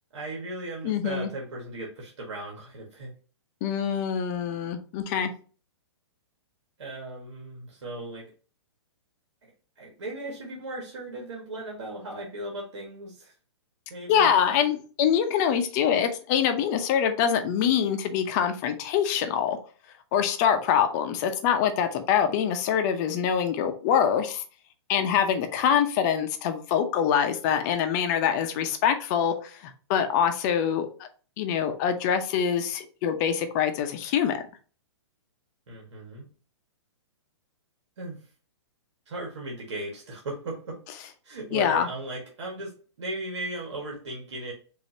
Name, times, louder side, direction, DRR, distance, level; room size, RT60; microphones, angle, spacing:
voice 1, 0.1-3.1 6.8-8.3 9.8-13.3 13.9-14.3 35.7-36.3 38.0-38.2 39.1-40.8 41.2-44.5, right 2 dB, 75° right, -1 dB, 1.5 m, -37 dB
voice 2, 0.8-1.3 3.6-5.3 14.1-19.6 20.1-24.4 24.9-30.9 31.4-34.4 41.5-41.9, left 8 dB, 40° left, 7 dB, 0.7 m, -24 dB
5.1 x 2.8 x 2.7 m, 0.38 s
hypercardioid pair, 130°, 15 cm